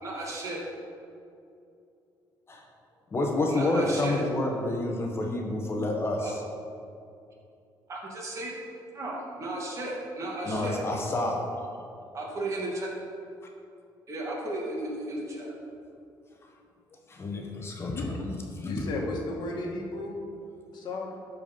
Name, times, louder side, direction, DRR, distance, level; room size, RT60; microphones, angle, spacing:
voice 1, 0.0-0.7 3.5-4.2 6.2-6.3 7.9-8.5 8.9-10.8 12.1-12.9 14.1-15.5, right 1 dB, 40° right, -3 dB, 2.3 m, -34 dB
voice 2, 3.1-6.4 10.4-11.7 17.1-18.9, left 2 dB, 30° left, 1 dB, 1.3 m, -29 dB
voice 3, 18.6-20.2 20.7-21.1, left 2 dB, 60° left, -1 dB, 1.8 m, -34 dB
12.5 x 4.8 x 5.5 m, 2.6 s
cardioid pair, 115°, 8 cm